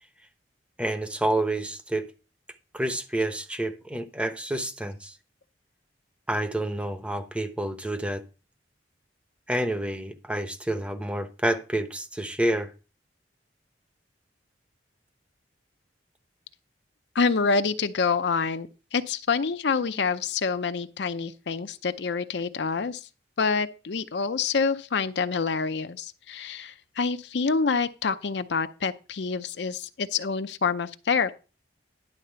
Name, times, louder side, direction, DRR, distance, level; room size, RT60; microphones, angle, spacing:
voice 1, 0.8-2.1 2.7-5.1 6.3-8.2 9.5-12.7, right 1 dB, 5° right, 0.8 m, -28 dB
voice 2, 17.1-23.0 23.4-31.3, left 5 dB, 65° left, 0.5 m, -27 dB
11.0 x 4.1 x 6.7 m
head